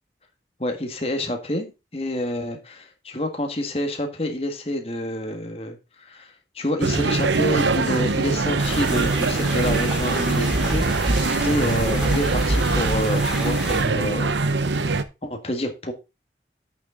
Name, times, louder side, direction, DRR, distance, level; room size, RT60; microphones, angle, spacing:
voice 1, 0.6-14.3 15.2-15.9, left 1 dB, 35° left, 1.6 m, -28 dB
sound 1, 6.8-15.0, right 3 dB, 90° right, 0.8 m, -23 dB
sound 2, 8.6-13.8, equal, 5° right, 2.5 m, -28 dB
8.3 x 6.9 x 3.8 m
head